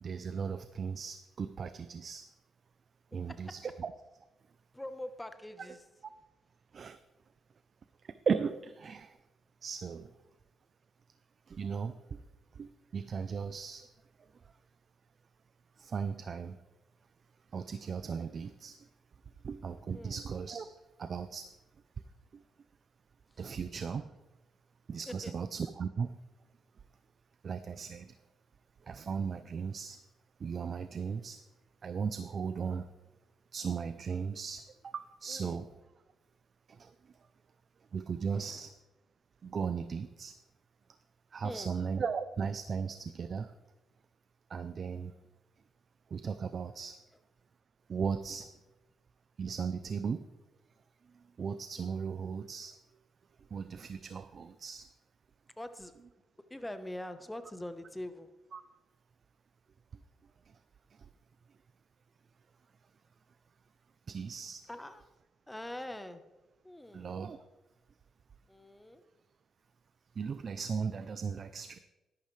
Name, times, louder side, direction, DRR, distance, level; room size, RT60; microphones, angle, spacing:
voice 1, 0.0-2.3 3.1-3.6 6.7-7.0 8.0-9.2 9.6-10.1 11.5-12.2 12.6-13.9 15.8-16.6 17.5-18.8 19.4-21.5 22.3-22.4 23.4-24.1 24.9-26.1 27.4-28.1 28.8-30.0 30.4-31.4 31.8-32.9 33.5-35.7 36.7-36.9 37.9-38.7 39.4-40.3 41.3-43.5 44.5-45.1 46.1-47.0 47.9-48.5 49.4-50.2 51.4-52.7 53.5-54.9 58.5-58.6 64.1-64.6 66.9-67.4 70.2-71.8, right 6 dB, 45° right, 11 dB, 0.5 m, -37 dB
voice 2, 3.1-3.7 4.7-5.8 19.9-20.2 23.3-23.5 25.1-25.3 35.3-35.6 38.3-38.7 41.4-41.7 55.6-55.9 56.5-58.3 64.7-65.1 65.5-66.2 66.6-67.1 68.5-69.0, left 1 dB, 10° left, 10 dB, 1.0 m, -44 dB
12.0 x 11.5 x 3.3 m, 1.1 s
cardioid pair, 90°, 0 cm